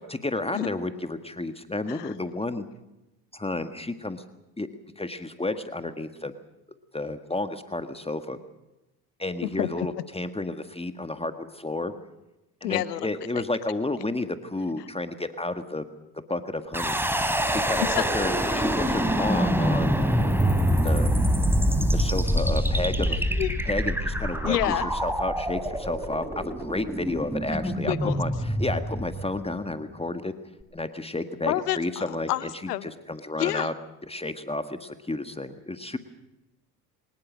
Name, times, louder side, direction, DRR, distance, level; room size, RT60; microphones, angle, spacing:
voice 1, 0.1-2.6 3.3-4.2 4.6-4.7 5.0-6.3 6.9-8.4 9.2-11.9 12.6-15.8 16.1-17.0 17.5-17.8 18.1-20.0 20.8-21.1 21.9-23.2 23.7-30.3 30.7-33.7 34.0-36.0, left 2 dB, 15° left, 9 dB, 1.7 m, -31 dB
voice 2, 9.4-9.9 12.6-13.1 17.9-18.0 23.1-23.6 24.4-24.9 27.6-28.2 31.5-32.9 33.4-33.7, left 14 dB, 85° left, 16 dB, 1.0 m, -29 dB
sound 1, 16.7-29.7, equal, 5° right, 3.7 m, -25 dB
24.0 x 20.5 x 6.3 m, 0.98 s
hypercardioid pair, 60°, 46 cm